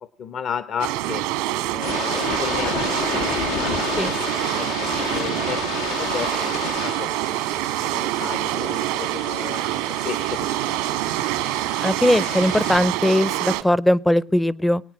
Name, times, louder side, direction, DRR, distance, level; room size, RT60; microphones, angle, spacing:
voice 1, 0.2-4.8 5.1-6.5 6.8-7.1 7.8-9.6 10.0-11.1, left 7 dB, 50° left, 12 dB, 1.0 m, -34 dB
sound 1, 0.8-13.6, right 15 dB, 85° right, 1.7 m, -26 dB
sound 2, 1.7-12.8, left 8 dB, 85° left, 1.4 m, -32 dB
voice 2, 11.8-14.8, left 1 dB, 5° left, 22 dB, 0.7 m, -19 dB
23.0 x 9.2 x 6.2 m, 0.40 s
supercardioid pair, 95°, 0 cm